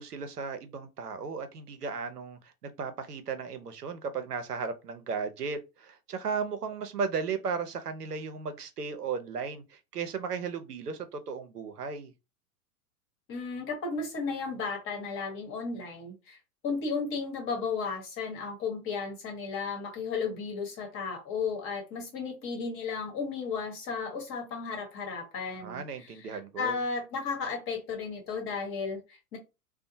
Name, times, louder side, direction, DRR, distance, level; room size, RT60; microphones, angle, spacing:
voice 1, 0.0-12.1 25.6-26.8, right 5 dB, 90° right, 0.6 m, -35 dB
voice 2, 13.3-16.4 16.6-29.4, left 5 dB, 30° left, 1.0 m, -34 dB
2.7 x 2.1 x 2.6 m
figure-of-eight pair, 100°, 45 cm